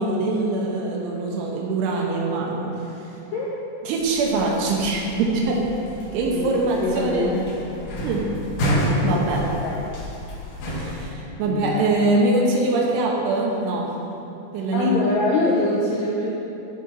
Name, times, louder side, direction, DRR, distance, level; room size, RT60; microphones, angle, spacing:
voice 1, 0.0-3.0 3.8-5.7 6.1-7.4 8.0-8.3 9.0-9.4 10.7-13.9 14.5-15.0, right 2 dB, 85° right, -2 dB, 2.9 m, -23 dB
voice 2, 3.1-3.6 6.3-7.7 8.8-9.7 11.4-12.1 14.7-16.3, left 2 dB, 90° left, -5 dB, 1.9 m, -25 dB
sound 1, 4.0-11.1, equal, 65° left, 1.8 m, -29 dB
10.5 x 3.7 x 4.6 m, 2.8 s
omnidirectional pair, 4.7 m